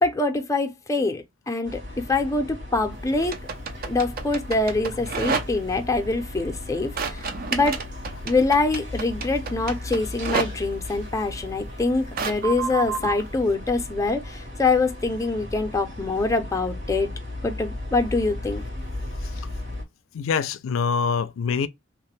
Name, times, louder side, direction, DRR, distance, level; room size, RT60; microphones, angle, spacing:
voice 1, 0.0-1.8 2.1-3.4 3.8-7.2 7.5-7.8 8.2-17.1 17.4-18.6, left 3 dB, 15° left, 0.5 m, -24 dB
sound 1, 1.6-19.8, left 1 dB, 70° right, 1.6 m, -36 dB
sound 2, 3.2-5.8 6.9-10.5 12.1-13.3, right 5 dB, 50° right, 0.5 m, -29 dB
voice 2, 20.1-21.7, left 5 dB, 85° left, 0.4 m, -25 dB
2.9 x 2.1 x 3.0 m
head